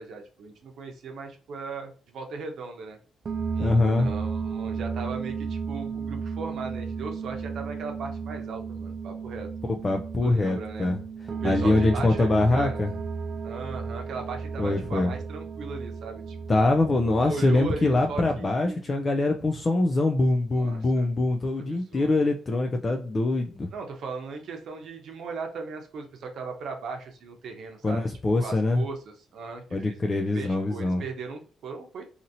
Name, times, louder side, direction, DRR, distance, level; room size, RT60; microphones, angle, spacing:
voice 1, 0.0-3.0 3.5-9.5 10.2-10.9 11.3-12.9 13.4-16.6 17.2-19.0 20.6-21.1 21.6-22.1 23.7-30.0 30.3-32.1, right 4 dB, 70° right, 4 dB, 0.8 m, -38 dB
sound 1, 3.2-18.4, right 5 dB, 45° right, 0.4 m, -34 dB
voice 2, 3.6-4.1 9.7-11.0 11.4-12.9 14.6-15.1 16.5-23.7 27.8-28.8 29.7-31.0, left 2 dB, 30° left, 3 dB, 0.4 m, -24 dB
2.8 x 2.7 x 2.6 m, 0.39 s
cardioid pair, 90°, 0 cm